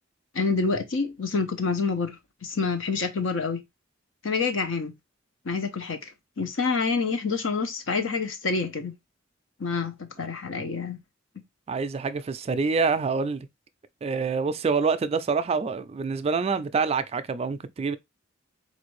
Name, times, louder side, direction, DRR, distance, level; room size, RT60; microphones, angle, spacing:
voice 1, 0.3-3.6 4.2-4.9 5.4-6.0 6.4-8.9 9.6-11.0, left 4 dB, 75° left, 0.8 m, -27 dB
voice 2, 11.7-13.5 14.0-18.0, right 5 dB, 30° right, 0.3 m, -26 dB
4.2 x 2.6 x 3.0 m
head